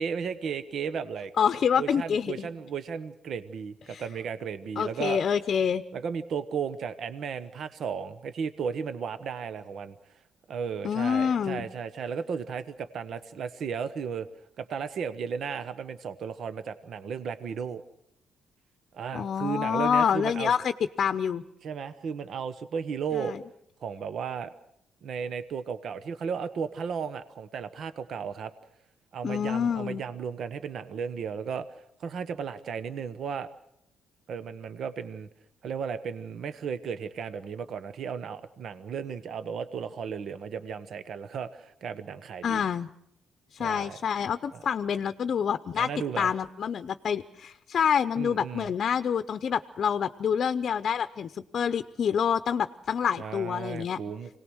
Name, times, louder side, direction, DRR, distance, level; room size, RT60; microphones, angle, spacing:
voice 1, 0.0-1.3 1.8-5.2 5.9-9.9 10.5-14.3 14.6-17.8 18.9-20.5 21.6-23.4 23.8-24.5 25.0-28.5 29.1-31.7 32.0-33.5 34.3-35.3 35.6-42.6 43.6-44.0 44.5-44.6 45.8-46.3 48.2-48.7 53.2-54.4, right 6 dB, 65° right, 11 dB, 1.1 m, -34 dB
voice 2, 1.4-2.5 3.9-4.0 4.8-5.8 10.8-11.7 19.1-20.7 21.0-21.4 23.1-23.4 29.2-30.0 42.4-42.9 43.5-45.9 46.2-54.0, left 7 dB, 55° left, 10 dB, 0.7 m, -27 dB
26.0 x 18.5 x 6.4 m, 0.76 s
cardioid pair, 90°, 0 cm